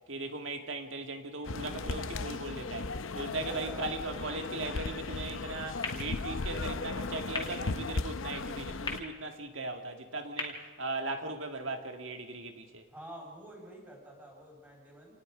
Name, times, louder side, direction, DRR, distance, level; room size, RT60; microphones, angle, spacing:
voice 1, 0.1-12.8, right 2 dB, 70° right, 1.9 m, -38 dB
sound 1, 1.4-9.0, left 3 dB, 75° left, 0.8 m, -37 dB
voice 2, 3.4-3.9 12.9-15.2, right 1 dB, 10° right, 5.1 m, -48 dB
sound 2, 5.8-11.8, left 3 dB, 20° left, 2.5 m, -44 dB
27.5 x 19.5 x 4.9 m
head